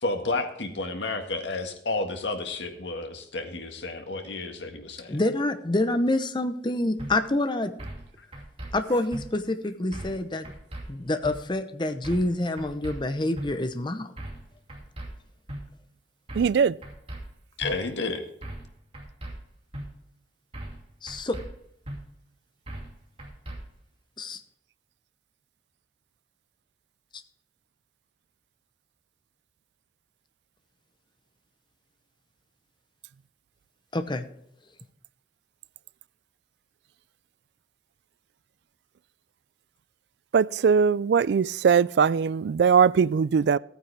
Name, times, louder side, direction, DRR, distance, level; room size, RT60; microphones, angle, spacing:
voice 1, 0.0-5.2 8.2-8.3 17.6-18.2, left 3 dB, 80° left, 1.7 m, -31 dB
voice 2, 5.1-7.7 8.7-10.5 10.9-14.1 21.0-21.4 24.2-24.4 33.9-34.3, left 1 dB, 25° left, 0.8 m, -27 dB
sound 1, 7.0-7.1 7.8-8.0 8.3-8.7 9.1-9.2 9.9-10.2 10.4-10.8 11.2-11.4 12.0-12.3 12.6-13.0 13.4-13.5 14.2-14.4 14.7-15.1 15.5-15.6 16.3-16.6 16.8-17.2 17.6-17.7 18.4-18.7 18.9-19.3 19.7-19.9 20.5-20.8 21.1-21.5 21.9-22.0 22.7-22.9 23.2-23.6, right 1 dB, 35° right, 2.6 m, -38 dB
voice 3, 16.4-16.7 40.3-43.6, right 6 dB, 65° right, 0.3 m, -21 dB
15.0 x 9.1 x 3.4 m
head